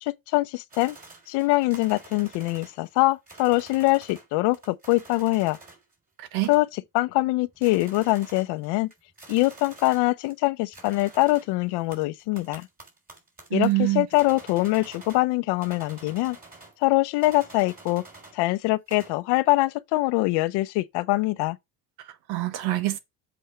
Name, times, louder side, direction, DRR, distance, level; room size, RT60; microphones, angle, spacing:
voice 1, 0.0-1.0 1.3-5.6 6.5-6.7 6.9-8.9 9.3-12.7 13.5-16.4 16.8-18.0 18.3-21.6, left 20 dB, 80° left, 0.8 m, -23 dB
sound 1, 0.7-4.3 4.5-5.9 6.4-6.9 7.2-7.3 7.5-10.5 10.7-15.3 15.6-16.8 17.2-18.4 18.7-19.2, right 3 dB, 20° right, 3.6 m, -48 dB
voice 2, 6.2-6.5 13.5-14.1 22.0-23.0, right 17 dB, 70° right, 1.4 m, -26 dB
7.6 x 4.3 x 5.6 m
cardioid pair, 130°, 40 cm